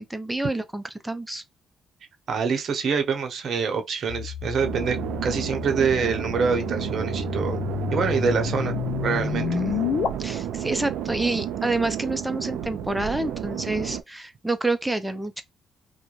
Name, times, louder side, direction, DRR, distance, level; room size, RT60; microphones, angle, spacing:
voice 1, 0.0-1.4 9.5-9.8 10.2-15.4, right 2 dB, 10° right, 0.5 m, -28 dB
voice 2, 2.3-7.6 7.9-8.8 9.0-9.6, right 5 dB, 60° right, 0.8 m, -25 dB
sound 1, 4.1-10.1, left 8 dB, 70° left, 0.4 m, -30 dB
sound 2, 4.6-14.0, right 10 dB, 85° right, 0.3 m, -31 dB
2.4 x 2.1 x 3.0 m
cardioid pair, 90°, 0 cm